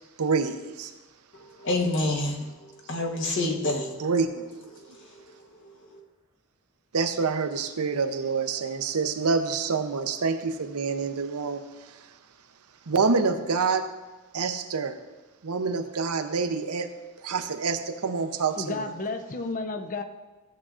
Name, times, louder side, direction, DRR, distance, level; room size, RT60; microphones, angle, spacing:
voice 1, 0.2-0.9 4.0-4.5 6.9-12.0 12.9-13.9 14.3-15.0 15.4-16.9 17.2-18.9, right 4 dB, 85° right, 7 dB, 0.7 m, -27 dB
voice 2, 1.6-4.1 4.7-5.2 5.6-6.0, left 2 dB, 55° left, 1 dB, 1.1 m, -29 dB
voice 3, 18.6-20.0, left 3 dB, 35° left, 7 dB, 0.5 m, -32 dB
14.0 x 7.4 x 2.5 m, 1.2 s
head